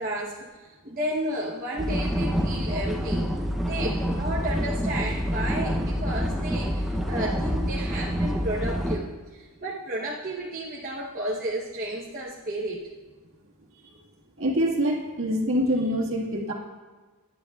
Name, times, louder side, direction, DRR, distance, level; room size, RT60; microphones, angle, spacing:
voice 1, 0.0-3.3 3.5-12.9, right 1 dB, 40° right, -5 dB, 1.0 m, -32 dB
sound 1, 1.8-9.0, equal, ahead, 0.7 m, -27 dB
voice 2, 14.4-16.5, equal, 65° right, -2 dB, 1.9 m, -25 dB
18.0 x 10.0 x 2.4 m, 1.4 s
head